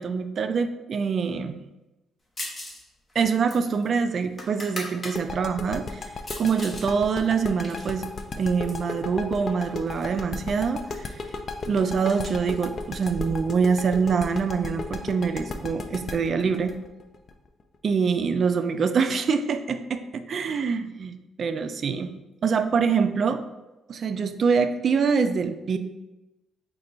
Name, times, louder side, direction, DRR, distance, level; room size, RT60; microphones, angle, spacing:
voice 1, 0.0-1.6 3.2-6.0 6.4-8.1 8.3-11.1 11.7-16.7 17.8-22.1 22.4-23.4 23.9-25.8, right 5 dB, 55° right, 9 dB, 0.3 m, -25 dB
sound 1, 2.4-2.8 3.1-5.2 5.6-6.9 7.2-8.9 9.6-10.2 10.4-10.5 10.8-14.0, left 1 dB, 25° left, 0.9 m, -40 dB
sound 2, 5.2-17.9, left 3 dB, 45° left, 0.4 m, -34 dB
3.8 x 2.2 x 4.3 m, 1.0 s
cardioid pair, 90°, 0 cm